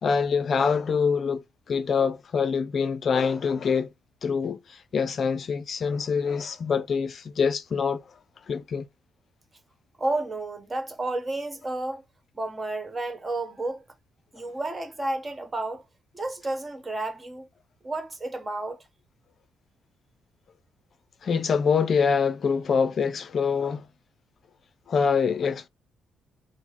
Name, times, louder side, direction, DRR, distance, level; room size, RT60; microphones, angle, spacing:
voice 1, 0.0-3.9 4.2-8.0 8.5-8.9 21.2-23.9 24.9-25.7, left 6 dB, 50° left, 0.5 m, -25 dB
voice 2, 10.0-12.0 12.3-13.8 14.3-15.8 16.1-17.5 17.8-18.8, right 2 dB, 25° right, 1.3 m, -31 dB
4.7 x 2.1 x 4.1 m
cardioid pair, 90°, 0 cm